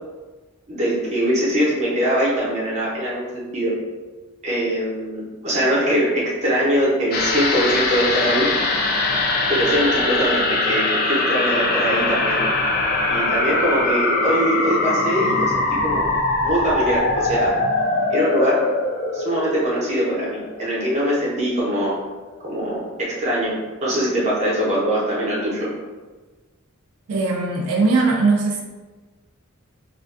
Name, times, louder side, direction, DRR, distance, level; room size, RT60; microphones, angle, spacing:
voice 1, 0.7-3.7 4.4-8.5 9.5-12.4 13.1-16.1 16.4-17.5 18.1-18.6 19.1-21.9 22.4-25.7, equal, 35° right, -6 dB, 0.7 m, -22 dB
sound 1, 7.1-21.8 22.1-22.2, left 2 dB, 45° left, 0.3 m, -22 dB
voice 2, 27.1-28.6, right 3 dB, 85° right, 0 dB, 0.3 m, -19 dB
2.4 x 2.2 x 2.4 m, 1.3 s
head